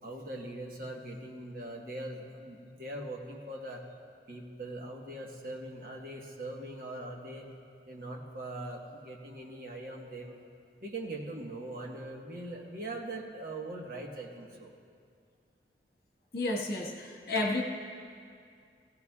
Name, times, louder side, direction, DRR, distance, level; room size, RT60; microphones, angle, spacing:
voice 1, 0.0-3.8 4.3-7.5 7.9-10.3 10.8-14.7, right 1 dB, 50° right, 0 dB, 1.3 m, -41 dB
voice 2, 16.3-17.6, left 2 dB, 55° left, -1 dB, 1.5 m, -31 dB
17.0 x 16.0 x 2.4 m, 2.3 s
head